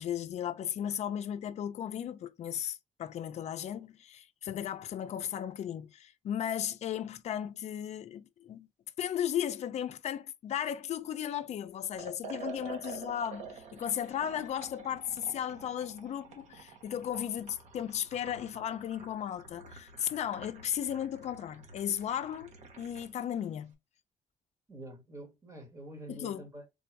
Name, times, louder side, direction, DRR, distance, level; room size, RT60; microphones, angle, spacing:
voice 1, 0.0-8.7 9.0-23.7 26.1-26.4, left 10 dB, 60° left, 0.5 m, -35 dB
Liquid, 11.9-23.2, right 5 dB, 60° right, 1.1 m, -48 dB
voice 2, 24.7-26.7, right 1 dB, 25° right, 1.4 m, -46 dB
3.8 x 2.6 x 4.5 m
wide cardioid pair, 165°, 13 cm